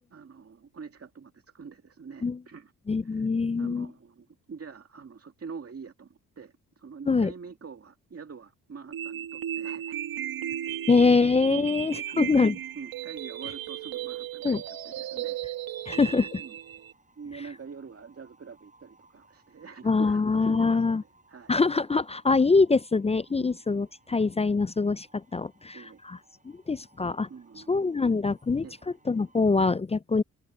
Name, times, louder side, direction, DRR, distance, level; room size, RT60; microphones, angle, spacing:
voice 1, 0.1-2.7 3.0-3.3 3.6-10.0 11.5-15.4 16.4-16.6 17.2-21.0 21.3-21.5 23.3-23.5 25.7-26.0 27.3-27.8 28.6-28.8, right 5 dB, 40° right, 2.3 m, -45 dB
voice 2, 2.9-3.9 7.1-7.3 10.9-12.5 14.4-14.6 15.9-16.4 19.8-21.0 21.5-26.2 26.7-27.3 27.7-28.7 29.1-30.2, left 4 dB, 20° left, 0.4 m, -24 dB
sound 1, 8.9-16.9, right 11 dB, 75° right, 1.4 m, -35 dB
sound 2, 11.4-29.6, right 2 dB, 20° right, 6.0 m, -63 dB
open air
cardioid pair, 70°, 36 cm